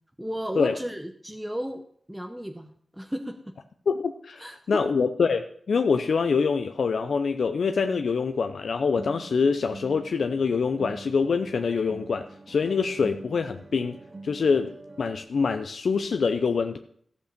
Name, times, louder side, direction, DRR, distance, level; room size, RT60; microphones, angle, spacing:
voice 1, 0.2-3.5 4.4-4.8, equal, 5° right, 5 dB, 0.9 m, -34 dB
voice 2, 3.9-14.0 14.2-16.8, left 5 dB, 80° left, 7 dB, 0.6 m, -25 dB
sound 1, 8.1-8.2 9.0-15.2, right 2 dB, 35° right, 1.3 m, -45 dB
14.5 x 5.3 x 6.7 m, 0.62 s
wide cardioid pair, 85°, 0 cm